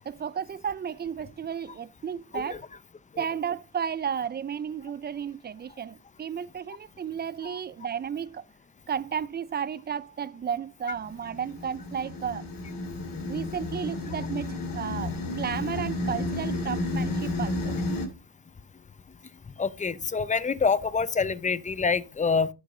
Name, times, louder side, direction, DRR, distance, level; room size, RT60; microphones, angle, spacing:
voice 1, 0.1-2.6 3.2-8.4 8.9-12.4 13.3-17.8, right 7 dB, 30° right, 0.4 m, -33 dB
sound 1, 10.9-18.1, left 2 dB, 65° left, 2.4 m, -32 dB
voice 2, 19.6-22.5, left 5 dB, 20° left, 0.6 m, -26 dB
11.5 x 6.7 x 3.7 m
cardioid pair, 100°, 36 cm